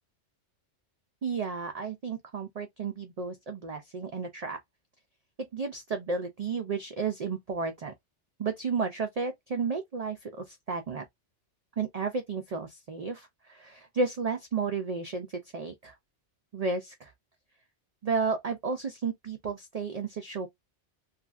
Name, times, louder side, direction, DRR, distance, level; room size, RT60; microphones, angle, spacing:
voice 1, 1.2-4.6 5.5-7.9 8.4-11.0 11.8-15.9 16.5-17.1 18.0-20.5, right 4 dB, 75° right, 0.3 m, -32 dB
3.1 x 2.5 x 2.3 m
omnidirectional pair, 1.2 m